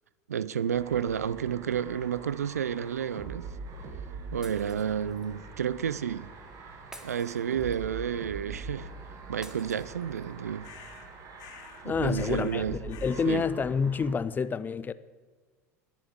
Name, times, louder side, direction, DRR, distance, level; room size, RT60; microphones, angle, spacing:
voice 1, 0.3-3.5 4.3-6.3 7.0-8.9 9.3-10.7 12.0-12.8 13.2-13.4, right 8 dB, 90° right, 0.4 m, -31 dB
sound 1, 0.7-14.2, right 3 dB, 45° right, 1.8 m, -43 dB
Shatter, 4.4-5.3 6.9-8.0 9.4-10.4, right 1 dB, 5° right, 1.4 m, -50 dB
sound 2, 10.6-11.1 11.4-11.9 12.1-12.6 12.9-13.4, left 10 dB, 55° left, 1.3 m, -50 dB
voice 2, 11.8-14.9, left 5 dB, 20° left, 0.5 m, -28 dB
21.5 x 7.3 x 3.6 m
hypercardioid pair, 85°, 8 cm